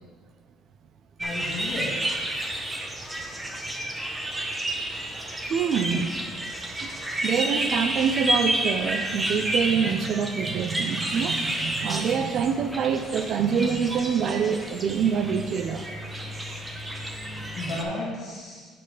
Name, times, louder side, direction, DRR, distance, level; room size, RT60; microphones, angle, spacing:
voice 1, 1.2-2.0 3.1-3.7 4.1-4.2 13.7-13.8 17.5-18.7, left 2 dB, 45° left, -5 dB, 1.6 m, -34 dB
sound 1, 1.2-17.8, right 1 dB, 15° right, 1.0 m, -30 dB
voice 2, 5.2-6.3 6.8-15.9, right 7 dB, 50° right, 8 dB, 0.5 m, -26 dB
7.3 x 6.7 x 5.0 m, 1.5 s
cardioid pair, 140°, 0 cm